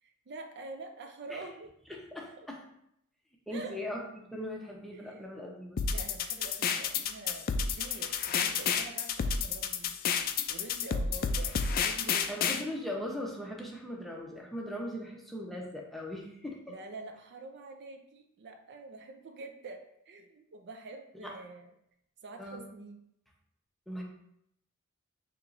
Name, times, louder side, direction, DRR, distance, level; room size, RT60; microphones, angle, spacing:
voice 1, 0.0-1.7 3.5-3.8 4.9-5.3 5.9-9.9 10.5-12.6 16.7-19.8 20.1-21.7 22.2-23.0, right 3 dB, 55° right, 5 dB, 0.4 m, -46 dB
voice 2, 1.9-2.6 3.5-5.8 12.3-16.6 21.2-21.3 22.4-22.7 23.9-24.0, left 1 dB, ahead, -2 dB, 0.7 m, -39 dB
sound 1, 5.8-12.6, left 6 dB, 45° left, 0.3 m, -30 dB
6.0 x 2.9 x 2.5 m, 0.76 s
head